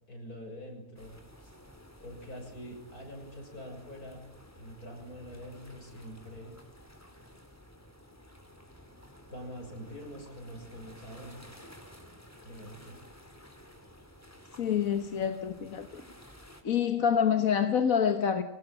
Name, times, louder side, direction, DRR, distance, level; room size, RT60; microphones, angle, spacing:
voice 1, 0.1-1.6 2.0-4.2 4.6-6.6 9.3-11.5 12.4-13.0, equal, 85° left, 6.8 m, -45 dB
sound 1, 1.0-16.6, left 1 dB, 10° left, 3.3 m, -53 dB
voice 2, 14.6-16.0 16.6-18.4, left 8 dB, 65° left, 1.6 m, -27 dB
24.5 x 18.5 x 8.9 m
omnidirectional pair, 1.5 m